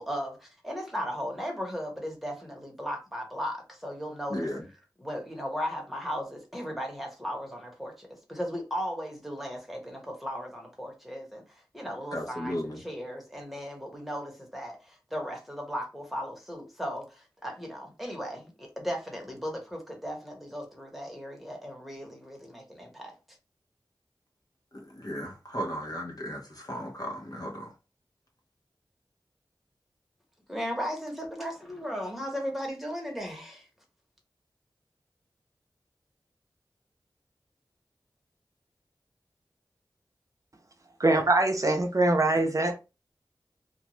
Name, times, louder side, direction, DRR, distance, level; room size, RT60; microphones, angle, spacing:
voice 1, 0.0-4.5 5.0-23.1 30.5-33.7, equal, ahead, 1.1 m, -36 dB
voice 2, 4.3-4.7 12.1-12.8 24.7-27.7, equal, 55° left, 0.9 m, -35 dB
voice 3, 41.0-42.7, right 2 dB, 45° right, 0.5 m, -23 dB
2.4 x 2.2 x 3.0 m
wide cardioid pair, 50°, 8 cm